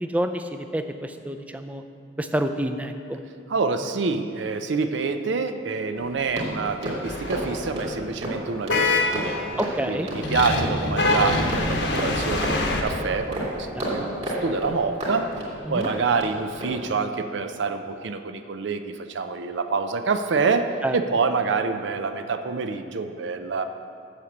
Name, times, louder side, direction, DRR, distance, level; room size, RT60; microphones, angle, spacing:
voice 1, 0.0-1.8 2.2-3.2 9.6-10.1 13.8-14.1 15.7-15.9 20.8-21.0, right 1 dB, 10° right, 7 dB, 0.4 m, -28 dB
voice 2, 3.5-9.4 9.9-15.3 15.7-20.7 20.9-23.6, right 4 dB, 75° right, 8 dB, 0.5 m, -27 dB
sound 1, 5.9-16.3 16.6-16.8, equal, 30° right, 2.4 m, -32 dB
sound 2, 7.0-7.7 8.7-9.7 10.2-12.8, left 2 dB, 75° left, 1.1 m, -25 dB
7.9 x 6.6 x 7.1 m, 2.3 s
head